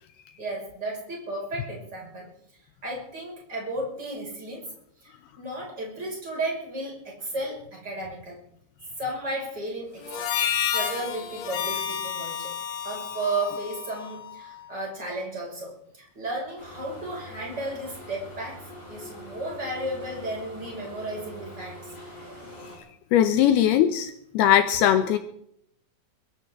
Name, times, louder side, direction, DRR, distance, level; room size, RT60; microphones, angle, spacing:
voice 1, 0.4-2.3 2.8-4.7 5.0-8.4 9.0-10.3 10.6-12.5 12.8-18.6 18.9-21.9, right 2 dB, 20° right, -3 dB, 6.0 m, -34 dB
Harmonica, 10.0-14.7, left 8 dB, 60° left, 2.7 m, -31 dB
sound 1, 16.6-22.8, left 1 dB, 10° left, 6.3 m, -43 dB
voice 2, 23.1-25.2, left 10 dB, 80° left, 9 dB, 2.5 m, -20 dB
22.5 x 14.5 x 3.7 m, 0.71 s
omnidirectional pair, 5.2 m